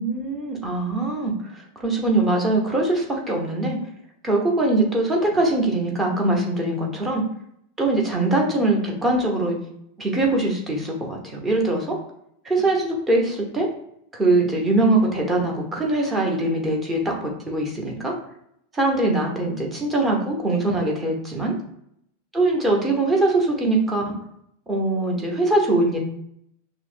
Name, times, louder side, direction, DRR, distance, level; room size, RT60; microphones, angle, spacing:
voice 1, 0.0-3.8 4.2-7.3 7.8-9.6 10.0-12.0 12.4-13.7 14.2-18.1 18.7-21.5 22.3-24.2 24.7-26.0, right 2 dB, 15° right, 0 dB, 1.0 m, -22 dB
5.9 x 2.1 x 2.5 m, 0.74 s
figure-of-eight pair, 90°, 0 cm